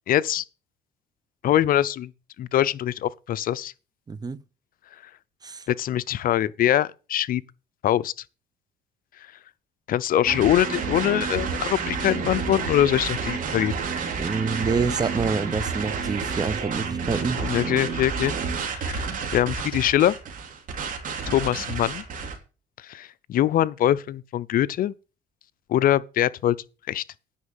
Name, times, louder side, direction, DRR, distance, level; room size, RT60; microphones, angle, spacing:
voice 1, 0.1-0.4 1.4-2.1 2.4-3.7 5.7-7.4 7.8-8.1 9.9-13.7 17.4-18.3 18.7-19.0 19.3-20.1 21.3-22.0 22.9-24.9 25.7-26.6 26.9-27.0, left 12 dB, 55° left, 0.6 m, -23 dB
voice 2, 4.1-4.4 5.4-5.7 14.2-17.4, right 4 dB, 25° right, 0.8 m, -27 dB
sound 1, 10.3-22.4, right 5 dB, 50° right, 3.1 m, -30 dB
10.0 x 5.9 x 7.2 m
cardioid pair, 110°, 17 cm